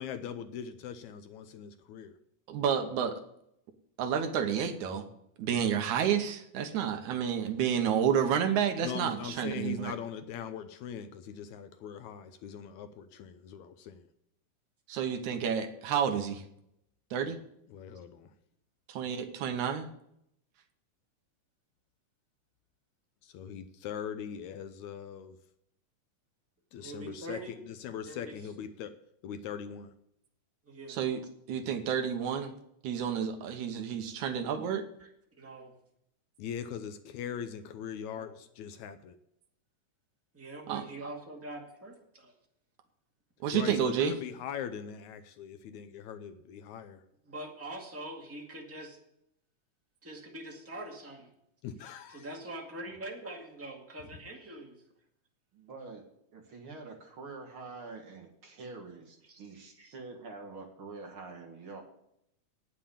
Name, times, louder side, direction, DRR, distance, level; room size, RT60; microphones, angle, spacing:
voice 1, 0.0-2.1 8.8-14.1 17.7-18.3 23.2-25.4 26.7-29.0 29.2-29.9 36.4-39.2 43.5-47.0 51.6-52.3, left 8 dB, 75° left, 9 dB, 1.9 m, -41 dB
voice 2, 2.5-3.2 4.0-5.1 5.4-9.9 14.9-16.4 17.1-17.4 18.9-19.9 30.9-31.2 31.5-32.5 32.8-34.8 40.7-40.8 43.4-44.1, right 8 dB, 75° right, 7 dB, 2.2 m, -30 dB
voice 3, 26.7-27.5 28.0-28.4 30.6-31.0 35.0-35.1 35.4-35.8 38.1-38.3 40.3-42.3 47.2-49.0 50.0-51.3 52.1-54.8 59.2-59.4 59.7-59.9, right 1 dB, 5° right, -1 dB, 1.3 m, -44 dB
voice 4, 55.5-56.0 56.3-61.8, right 3 dB, 50° right, 1 dB, 2.0 m, -46 dB
9.2 x 7.5 x 8.5 m, 0.76 s
omnidirectional pair, 3.6 m